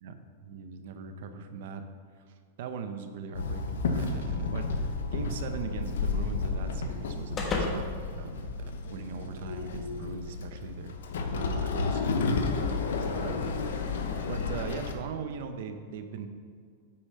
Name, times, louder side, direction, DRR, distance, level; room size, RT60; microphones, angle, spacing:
voice 1, 0.4-1.8 2.2-12.0 12.6-12.8 13.1-13.6 13.9-16.3, right 5 dB, 65° right, 7 dB, 0.9 m, -40 dB
Walk footsteps / Chatter / Hiss, 3.3-14.9, left 4 dB, 85° left, 0.9 m, -32 dB
sound 1, 4.8-9.2, left 2 dB, 25° left, 1.2 m, -38 dB
8.6 x 5.0 x 5.6 m, 2.2 s
supercardioid pair, 140°, 0 cm